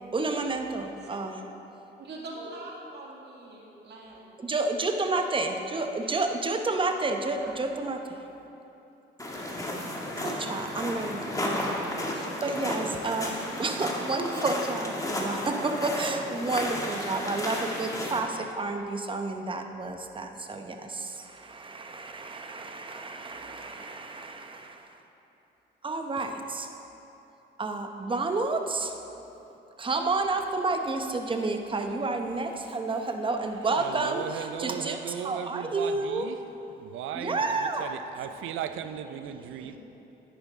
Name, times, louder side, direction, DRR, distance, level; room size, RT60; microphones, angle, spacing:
voice 1, 0.1-1.4 4.4-8.2 10.2-25.0 25.8-26.7 27.6-29.0 29.8-36.3 37.1-38.0, right 3 dB, 25° right, 5 dB, 0.8 m, -30 dB
voice 2, 2.0-4.3 5.2-5.5 7.4-7.5 39.0-39.8, right 2 dB, 60° right, -2 dB, 1.9 m, -44 dB
sound 1, 9.2-18.2, left 1 dB, 15° left, 1.4 m, -33 dB
voice 3, 33.8-36.4 36.8-39.8, right 9 dB, 90° right, 10 dB, 0.5 m, -37 dB
10.5 x 9.4 x 3.6 m, 3.0 s
cardioid pair, 90°, 20 cm